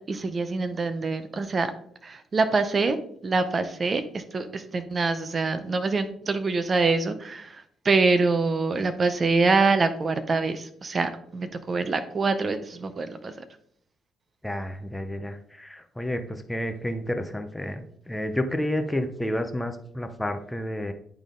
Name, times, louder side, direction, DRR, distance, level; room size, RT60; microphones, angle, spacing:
voice 1, 0.1-1.7 2.0-3.0 3.2-13.3, right 3 dB, 40° right, 10 dB, 0.7 m, -25 dB
voice 2, 14.4-20.9, left 1 dB, 10° left, 7 dB, 0.7 m, -30 dB
10.5 x 3.6 x 3.8 m, 0.65 s
cardioid pair, 90°, 0 cm